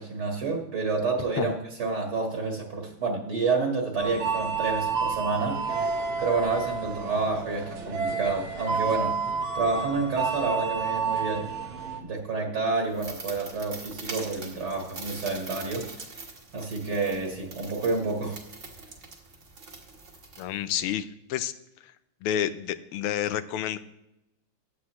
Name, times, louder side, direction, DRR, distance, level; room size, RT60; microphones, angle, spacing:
voice 1, 0.0-5.6 6.2-9.2 9.5-11.5 12.0-15.9 16.5-18.4, right 4 dB, 55° right, 0 dB, 2.2 m, -29 dB
sound 1, 4.0-12.0, right 5 dB, 80° right, 2.0 m, -30 dB
sound 2, 12.9-20.9, right 3 dB, 40° right, 1.6 m, -43 dB
voice 2, 20.4-21.5 22.2-23.8, left 10 dB, 85° left, 13 dB, 1.5 m, -29 dB
15.5 x 9.6 x 3.1 m, 0.89 s
omnidirectional pair, 2.3 m